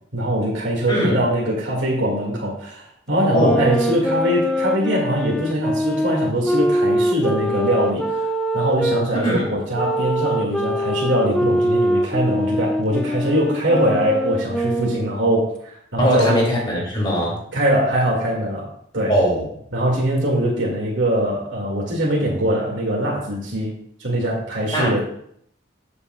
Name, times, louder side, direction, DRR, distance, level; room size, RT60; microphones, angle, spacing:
voice 1, 0.1-16.3 17.5-19.1 19.7-25.0, right 1 dB, 70° right, -4 dB, 2.0 m, -22 dB
voice 2, 0.9-1.2 3.3-3.6 9.1-9.6 16.0-17.4 19.1-19.5 24.7-24.9, equal, 25° left, -2 dB, 2.4 m, -20 dB
sound 1, 3.2-9.1 9.8-15.2, equal, 5° left, 0.3 m, -23 dB
12.5 x 6.9 x 2.3 m, 0.67 s
head